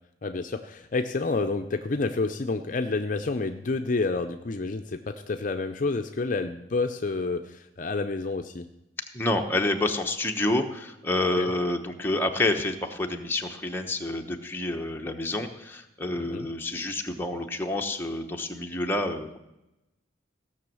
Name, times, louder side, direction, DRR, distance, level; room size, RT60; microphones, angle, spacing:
voice 1, 0.2-8.7 11.4-11.5 16.2-16.5, left 3 dB, 45° left, 7 dB, 0.5 m, -29 dB
voice 2, 9.1-19.4, left 2 dB, 10° left, 2 dB, 1.0 m, -28 dB
16.5 x 6.2 x 7.6 m, 0.94 s
head